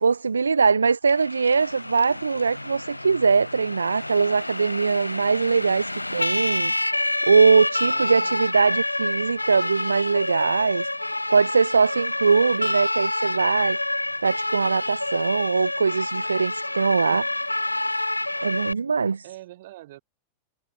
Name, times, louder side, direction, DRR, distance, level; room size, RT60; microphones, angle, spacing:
voice 1, 0.0-6.7 7.3-10.9 11.3-13.8 14.2-17.3 18.4-19.2, right 5 dB, 75° right, 0.6 m, -21 dB
Siren, 1.1-18.7, left 1 dB, 85° left, 0.7 m, -28 dB
voice 2, 7.8-8.4 19.2-20.0, right 16 dB, 55° right, 5.4 m, -44 dB
figure-of-eight pair, 90°, 0 cm